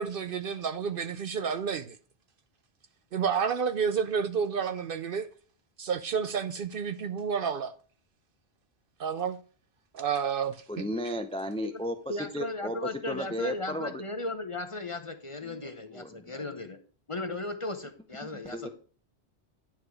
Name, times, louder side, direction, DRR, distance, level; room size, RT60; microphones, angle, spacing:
voice 1, 0.0-2.0 3.1-5.3 5.8-7.7 9.0-9.4 9.9-11.1, right 6 dB, 60° right, 0.7 m, -30 dB
voice 2, 10.7-12.8 13.1-14.0 15.5-16.5 18.2-18.7, equal, 10° left, 0.4 m, -35 dB
voice 3, 12.1-16.8 17.1-18.7, left 2 dB, 30° left, 0.8 m, -36 dB
10.5 x 4.8 x 4.8 m
omnidirectional pair, 1.2 m